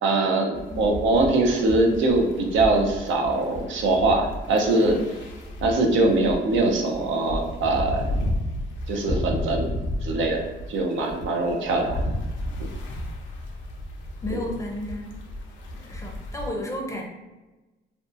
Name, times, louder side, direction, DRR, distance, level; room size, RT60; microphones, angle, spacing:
voice 1, 0.0-5.0 5.6-8.1 8.9-9.7 10.0-12.0 14.3-14.4, right 2 dB, 75° right, 2 dB, 0.5 m, -22 dB
sound 1, 0.5-16.5, left 1 dB, 70° left, 0.5 m, -33 dB
voice 2, 14.2-15.2 15.7-17.0, left 1 dB, 15° left, 0 dB, 0.5 m, -32 dB
2.6 x 2.2 x 2.5 m, 1.1 s
cardioid pair, 90°, 20 cm